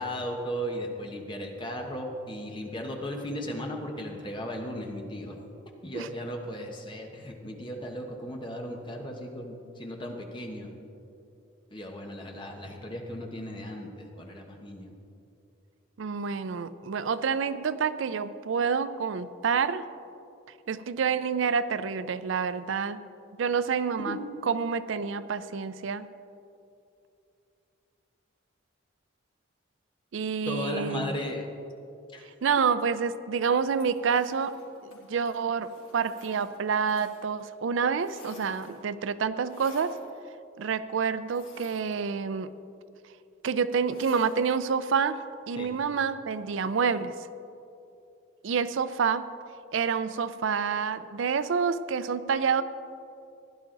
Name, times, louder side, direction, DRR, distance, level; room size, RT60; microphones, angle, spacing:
voice 1, 0.0-5.3 5.8-10.7 11.7-14.9 24.0-24.2 30.5-31.5 32.1-32.2 45.6-45.7, equal, 25° left, 1 dB, 1.2 m, -36 dB
voice 2, 16.0-19.8 20.7-23.0 23.4-24.2 24.4-26.1 30.1-31.1 32.4-34.6 34.8-39.9 40.6-42.5 43.4-47.1 48.4-49.3 49.7-52.6, right 6 dB, 70° right, 14 dB, 0.4 m, -28 dB
sound 1, 33.7-37.5 37.7-38.9 39.4-40.1 41.2-42.4 43.8-44.6, left 3 dB, 75° left, 3.4 m, -53 dB
16.0 x 10.5 x 3.9 m, 2.7 s
head